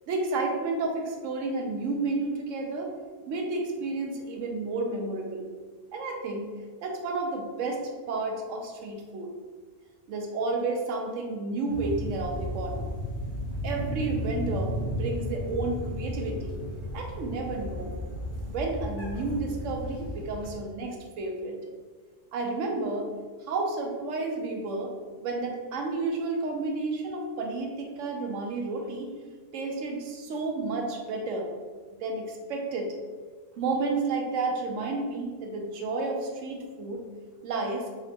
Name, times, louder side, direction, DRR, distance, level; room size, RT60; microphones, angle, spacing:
voice 1, 0.1-2.9 3.3-5.5 5.9-6.5 6.8-9.3 10.1-12.9 13.6-16.6 16.9-18.0 18.5-21.6 22.3-23.1 23.4-24.9 25.2-29.1 29.5-31.5 32.0-32.9 33.6-37.1 37.4-37.9, right 3 dB, 85° right, 2 dB, 1.0 m, -31 dB
sound 1, 11.7-20.6, equal, 45° right, 1.2 m, -34 dB
3.8 x 2.1 x 4.2 m, 1.5 s
omnidirectional pair, 1.3 m